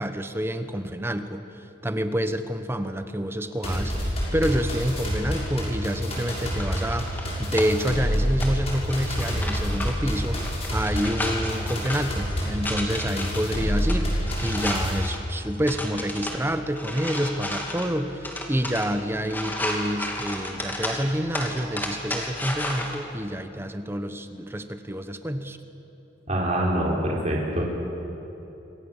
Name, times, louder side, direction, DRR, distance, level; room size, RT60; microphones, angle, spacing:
voice 1, 0.0-25.6, equal, 15° right, 9 dB, 1.0 m, -28 dB
sound 1, 3.6-14.9, equal, 35° left, 6.5 m, -28 dB
sound 2, 6.0-23.0, left 1 dB, 10° left, 2.8 m, -34 dB
voice 2, 26.3-27.6, right 1 dB, 40° right, -3 dB, 4.3 m, -25 dB
28.0 x 25.0 x 7.3 m, 3.0 s
head